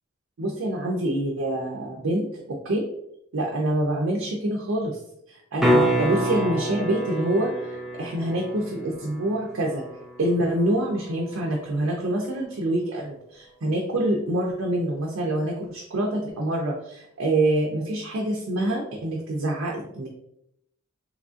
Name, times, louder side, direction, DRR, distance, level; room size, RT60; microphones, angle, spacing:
voice 1, 0.4-2.8 3.3-5.0 5.3-9.8 10.2-20.1, right 1 dB, 75° right, -1 dB, 0.5 m, -26 dB
sound 1, 5.6-11.6 16.3-16.4, equal, ahead, 0.3 m, -28 dB
3.1 x 2.4 x 2.4 m, 0.75 s
head